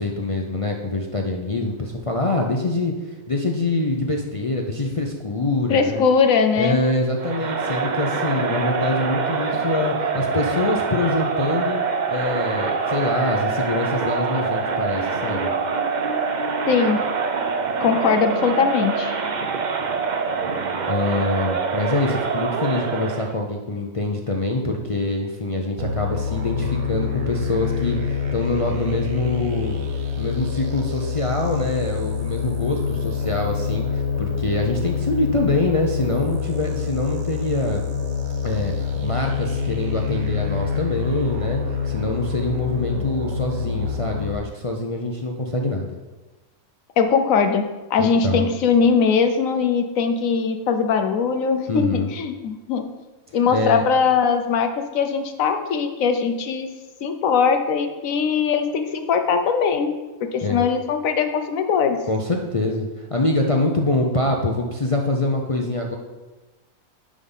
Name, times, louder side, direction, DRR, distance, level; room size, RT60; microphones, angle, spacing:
voice 1, 0.0-2.9 3.3-6.0 6.6-11.8 12.1-15.5 20.9-29.8 30.2-37.8 38.4-46.0 48.0-48.5 51.7-52.1 53.5-53.8 60.4-60.6 62.1-65.9, left 2 dB, 45° left, 0 dB, 0.4 m, -25 dB
voice 2, 5.7-6.8 16.7-17.0 17.8-19.1 47.0-47.7 47.9-52.9 53.3-56.7 57.0-59.9 60.3-62.0, left 6 dB, 70° left, 6 dB, 1.1 m, -20 dB
Crowd, 7.2-23.4, right 5 dB, 50° right, 0.5 m, -25 dB
sound 1, 25.8-44.3, left 6 dB, 85° right, 1.3 m, -26 dB
9.9 x 3.7 x 5.5 m, 1.2 s
omnidirectional pair, 1.5 m